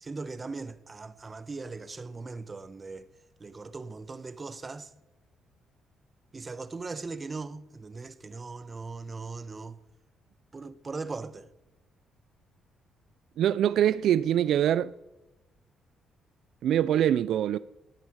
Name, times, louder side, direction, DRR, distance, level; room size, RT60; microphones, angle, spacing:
voice 1, 0.0-3.1 3.4-4.9 6.3-9.8 10.5-11.5, right 3 dB, 30° right, 1.0 m, -39 dB
voice 2, 13.4-14.9 16.6-17.6, right 10 dB, 75° right, 0.4 m, -24 dB
18.5 x 10.5 x 4.8 m
cardioid pair, 90°, 0 cm